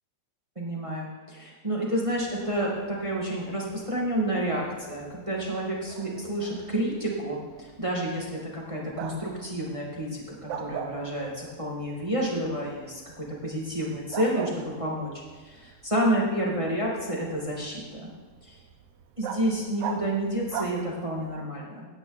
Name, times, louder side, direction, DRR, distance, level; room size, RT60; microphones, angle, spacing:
voice 1, 0.5-18.1 19.2-21.9, right 1 dB, 15° right, -3 dB, 1.6 m, -30 dB
Bark, 2.1-21.4, right 7 dB, 80° right, 2.2 m, -43 dB
17.0 x 10.5 x 4.0 m, 1.4 s
omnidirectional pair, 3.3 m